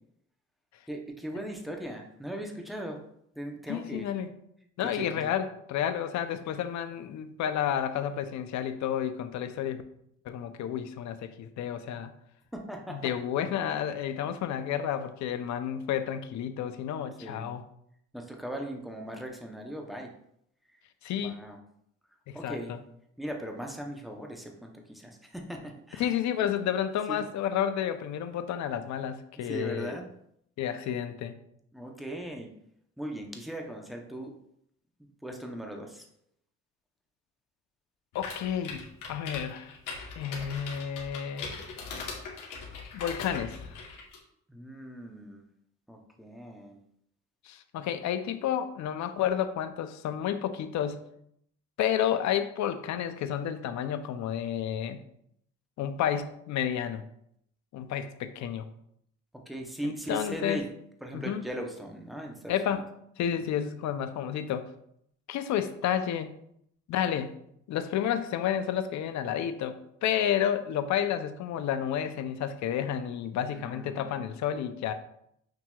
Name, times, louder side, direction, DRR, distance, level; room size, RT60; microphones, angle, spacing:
voice 1, 0.9-3.0 3.4-4.1 4.9-5.3 12.5-13.1 17.2-17.5 18.1-20.1 20.7-20.8 21.1-21.6 22.3-22.7 23.2-26.1 27.1-27.2 29.4-30.1 31.7-32.5 33.0-34.3 35.2-36.0 44.5-45.4 45.9-46.8 59.5-60.7 61.0-62.8 73.5-74.2, right 1 dB, ahead, 2 dB, 0.7 m, -39 dB
voice 2, 3.7-4.3 4.8-9.8 10.3-12.1 12.9-17.6 21.0-21.4 22.3-22.8 26.0-30.0 30.6-31.4 38.1-39.7 40.2-41.5 42.9-43.7 47.4-51.0 51.8-55.0 55.8-57.0 57.7-58.7 59.8-60.6 61.1-61.4 62.5-62.8 63.2-64.7 65.3-66.4 66.9-67.3 67.7-74.9, left 9 dB, 70° left, 10 dB, 0.5 m, -31 dB
sound 1, 38.1-44.2, left 4 dB, 85° left, 1.0 m, -40 dB
6.1 x 2.8 x 2.2 m, 0.73 s
cardioid pair, 90°, 30 cm